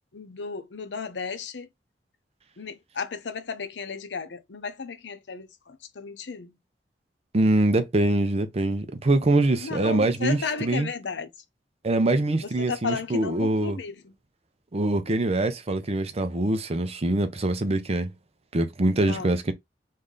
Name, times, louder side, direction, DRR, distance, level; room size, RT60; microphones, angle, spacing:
voice 1, 0.1-1.7 2.6-6.6 9.6-11.3 12.4-14.2 19.0-19.3, left 5 dB, 85° left, 0.7 m, -34 dB
voice 2, 7.3-10.9 11.8-13.8 14.7-18.1 18.5-19.5, right 2 dB, 35° right, 0.6 m, -24 dB
3.2 x 2.7 x 3.7 m
head